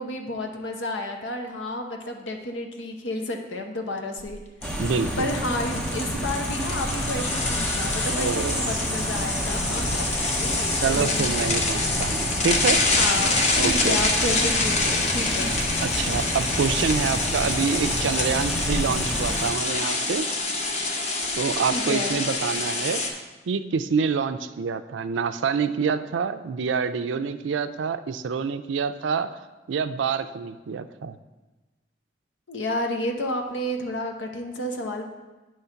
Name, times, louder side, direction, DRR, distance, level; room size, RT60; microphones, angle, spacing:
voice 1, 0.0-4.4 5.2-10.1 10.4-11.3 11.9-12.0 13.0-15.5 21.6-22.2 32.5-35.1, left 1 dB, 90° left, 4 dB, 0.9 m, -31 dB
sound 1, 4.2-4.3 4.6-4.8 5.3-23.1, left 3 dB, 35° left, 0.7 m, -26 dB
sound 2, 4.6-19.5, equal, 5° left, 0.7 m, -30 dB
voice 2, 4.8-5.3 8.1-8.6 10.8-12.8 13.6-14.0 15.8-20.3 21.4-23.0 23.5-29.4 29.7-31.1, right 5 dB, 90° right, 10 dB, 0.4 m, -26 dB
9.3 x 3.2 x 5.7 m, 1.2 s
head